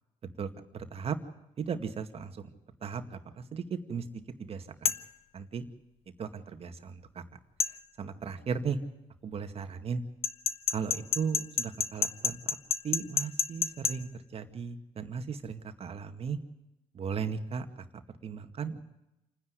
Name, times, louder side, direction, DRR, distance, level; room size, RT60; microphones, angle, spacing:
voice 1, 0.4-1.2 1.6-2.3 2.8-4.0 4.4-4.9 5.3-5.6 6.2-7.2 8.0-8.8 9.2-10.0 10.7-12.6 12.8-16.4 16.9-17.7 18.2-18.8, right 6 dB, 50° right, 7 dB, 2.1 m, -36 dB
sound 1, 4.9-5.1 7.6-7.8 10.2-14.0, left 6 dB, 50° left, 0.9 m, -28 dB
28.0 x 10.0 x 9.7 m, 0.92 s
cardioid pair, 80°, 13 cm